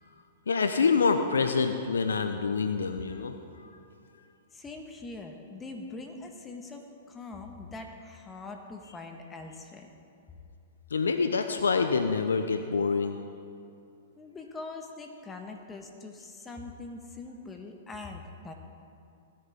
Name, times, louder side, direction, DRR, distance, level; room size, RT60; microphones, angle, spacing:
voice 1, 0.5-3.7 10.9-13.2, left 5 dB, 90° left, 7 dB, 0.6 m, -26 dB
voice 2, 4.5-9.9 14.2-18.5, left 3 dB, 15° left, 3 dB, 1.3 m, -43 dB
16.5 x 10.5 x 3.6 m, 2.6 s
hypercardioid pair, 120°, 0 cm